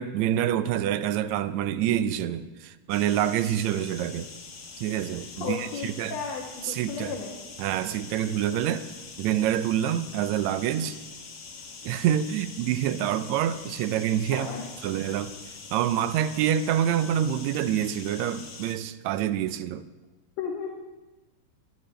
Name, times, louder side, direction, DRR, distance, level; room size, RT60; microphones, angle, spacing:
voice 1, 0.0-4.3 4.8-6.1 6.6-7.1 7.6-8.9 9.2-11.0 11.8-14.5 14.8-15.3 15.7-19.8, right 10 dB, 80° right, 1.7 m, -27 dB
sound 1, 2.9-18.7, left 4 dB, 80° left, 0.8 m, -44 dB
voice 2, 5.4-7.4 14.2-14.7 20.4-20.7, left 5 dB, 60° left, 2.4 m, -34 dB
25.0 x 10.5 x 3.3 m
omnidirectional pair, 3.7 m